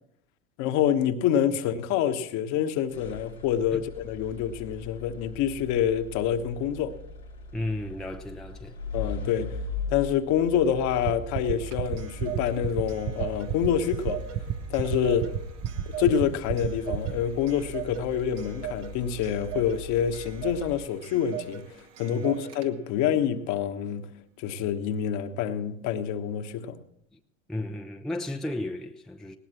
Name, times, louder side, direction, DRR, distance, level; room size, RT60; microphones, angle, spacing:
voice 1, 0.6-7.0 8.9-9.6 9.9-14.2 14.7-15.3 16.0-24.1 24.4-26.8, left 9 dB, 45° left, 1.3 m, -27 dB
sound 1, 2.9-21.2, left 2 dB, 80° left, 3.2 m, -41 dB
voice 2, 7.5-8.8 22.1-22.3 27.1-27.2 27.5-29.4, left 1 dB, ahead, 0.7 m, -34 dB
sound 2, 11.0-17.1, right 11 dB, 30° right, 0.8 m, -29 dB
Clock, 11.4-23.0, right 10 dB, 60° right, 1.6 m, -41 dB
19.5 x 18.5 x 3.0 m
figure-of-eight pair, 75°, 41 cm